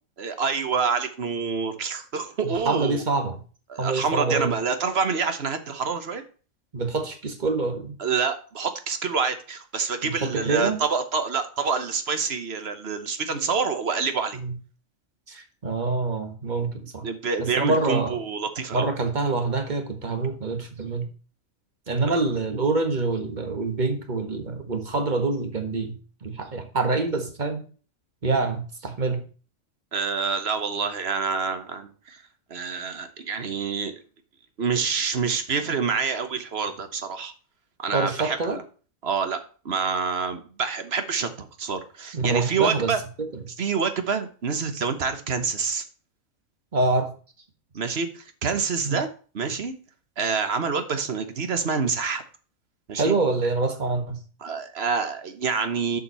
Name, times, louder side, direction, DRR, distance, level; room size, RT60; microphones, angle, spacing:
voice 1, 0.2-3.0 3.7-6.2 8.0-14.4 17.0-18.9 22.1-22.2 29.9-32.2 32.5-33.9 34.6-37.3 37.8-38.6 39.0-39.4 39.6-43.0 43.6-45.8 47.7-49.1 49.3-49.7 50.2-52.2 52.9-53.1 54.4-56.0, right 5 dB, 50° right, 9 dB, 1.3 m, -27 dB
voice 2, 2.4-3.4 3.8-4.5 6.7-8.0 10.0-10.8 14.3-14.5 15.3-17.1 17.4-18.2 18.7-21.1 21.9-27.6 28.2-29.2 37.9-38.6 42.1-42.9 43.2-43.4 46.7-47.1 48.8-49.0 52.9-54.2, right 3 dB, 35° right, 7 dB, 1.5 m, -26 dB
7.2 x 5.5 x 6.7 m, 0.39 s
omnidirectional pair, 1.4 m